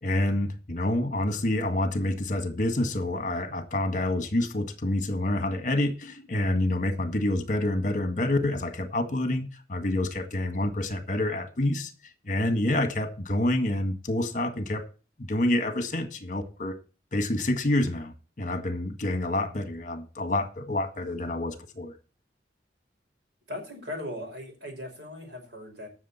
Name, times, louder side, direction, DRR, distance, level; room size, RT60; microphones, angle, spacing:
voice 1, 0.0-11.9 12.2-14.9 15.2-16.8 17.1-21.9, left 1 dB, 45° left, 1.7 m, -27 dB
voice 2, 23.5-25.9, left 1 dB, 85° right, 5.5 m, -38 dB
16.5 x 6.6 x 4.3 m
head